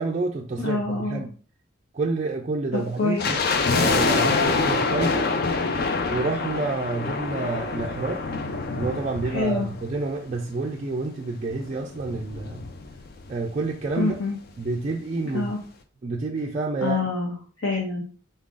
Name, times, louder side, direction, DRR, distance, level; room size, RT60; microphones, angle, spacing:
voice 1, 0.0-1.3 1.9-3.4 3.7-5.3 6.1-8.3 8.7-12.6 13.3-14.2 14.6-15.5 16.0-17.1, right 3 dB, 35° right, 0 dB, 0.3 m, -28 dB
voice 2, 0.6-1.2 2.7-3.3 9.2-9.7 14.0-14.4 15.3-15.6 16.8-18.0, left 3 dB, 75° left, -3 dB, 0.9 m, -26 dB
sound 1, 3.2-10.5 10.7-10.8 11.5-13.3 13.6-13.7 13.9-14.2 14.6-14.7, left 4 dB, 45° left, 0.4 m, -26 dB
3.9 x 2.5 x 3.7 m, 0.39 s
head